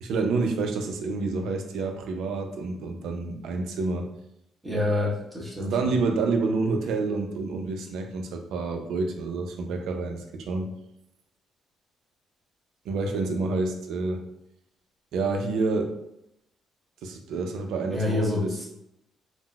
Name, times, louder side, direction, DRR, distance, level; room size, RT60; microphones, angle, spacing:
voice 1, 0.0-4.1 5.6-10.7 12.9-14.2 15.1-15.9 17.0-18.6, right 3 dB, 75° right, 4 dB, 0.4 m, -28 dB
voice 2, 4.6-5.9 17.9-18.7, left 2 dB, 10° right, -4 dB, 0.9 m, -27 dB
3.7 x 2.0 x 2.2 m, 0.81 s
cardioid pair, 120°, 0 cm